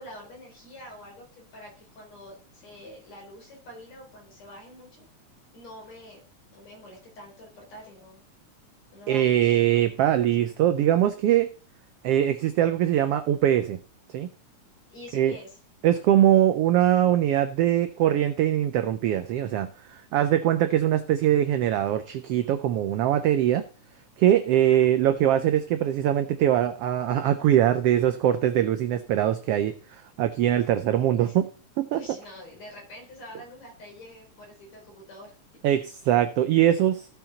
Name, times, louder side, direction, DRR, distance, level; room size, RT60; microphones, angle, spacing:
voice 1, 0.0-5.0 5.5-6.2 6.5-8.2 8.9-9.6 14.9-15.6 24.5-24.9 31.2-31.4 31.9-35.4 35.6-35.8, left 1 dB, 65° left, -1 dB, 5.3 m, -46 dB
voice 2, 9.1-11.5 12.0-13.8 14.1-14.3 15.1-15.4 15.8-23.6 24.2-31.5 31.8-32.0 35.6-37.1, right 11 dB, 80° right, 9 dB, 1.3 m, -22 dB
15.0 x 5.8 x 4.0 m, 0.39 s
omnidirectional pair, 3.4 m